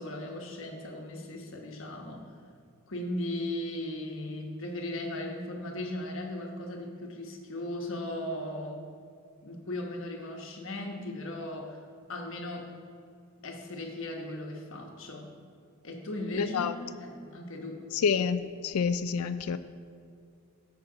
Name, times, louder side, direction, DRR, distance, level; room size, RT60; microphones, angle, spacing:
voice 1, 0.0-2.3 2.9-8.8 9.4-11.8 12.1-12.7 13.4-15.3 15.8-17.8, left 1 dB, 65° left, 2 dB, 1.2 m, -37 dB
voice 2, 16.4-16.7 17.9-19.6, left 6 dB, 80° left, 12 dB, 0.4 m, -28 dB
14.0 x 5.7 x 3.9 m, 2.3 s
head